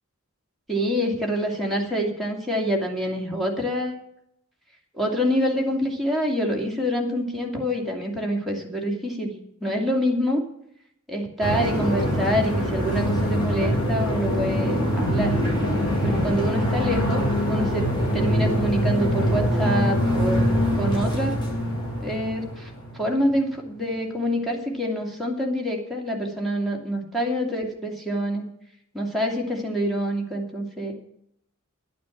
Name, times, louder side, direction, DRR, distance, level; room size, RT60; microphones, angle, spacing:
voice 1, 0.7-4.0 4.9-9.3 9.6-10.4 11.1-15.4 16.0-17.9 18.1-20.4 20.7-21.4 22.0-28.5 28.9-30.9, equal, ahead, -1 dB, 2.4 m, -26 dB
sound 1, 11.4-23.3, equal, 20° left, 6.0 m, -24 dB
11.5 x 9.5 x 7.2 m, 0.74 s
head